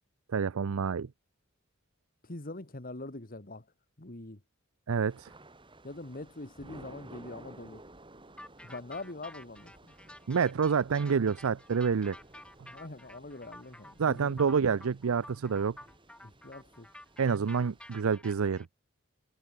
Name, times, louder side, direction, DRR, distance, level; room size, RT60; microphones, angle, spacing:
voice 1, 0.3-1.1 4.9-5.3 10.3-12.2 14.0-15.8 17.2-18.7, right 6 dB, 85° right, 0.5 m, -28 dB
voice 2, 2.2-3.7 4.0-4.4 5.8-7.8 8.6-9.9 12.7-14.5 16.2-16.9, left 2 dB, 45° left, 1.8 m, -43 dB
Thunder / Rain, 5.1-18.0, right 2 dB, 25° right, 3.8 m, -55 dB
sound 1, 8.4-18.6, left 1 dB, 5° left, 4.0 m, -51 dB
head